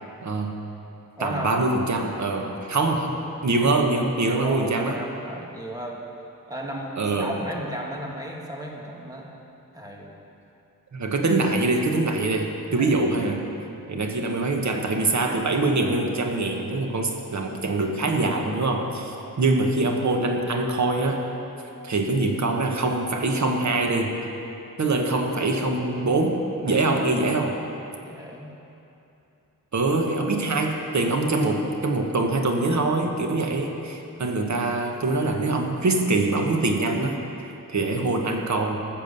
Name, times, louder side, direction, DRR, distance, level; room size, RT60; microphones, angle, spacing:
voice 1, 0.2-0.6 1.2-3.1 3.4-5.0 7.0-7.3 10.9-13.4 13.9-21.3 21.8-24.2 24.8-27.6 29.7-38.8, right 2 dB, 55° right, 3 dB, 1.2 m, -24 dB
voice 2, 1.2-1.5 2.8-2.9 4.3-6.0 6.5-9.3 9.7-10.1 12.8-13.0 28.0-28.6, equal, 10° right, -1 dB, 1.4 m, -35 dB
14.5 x 7.1 x 6.8 m, 2.9 s
wide cardioid pair, 160°, 35 cm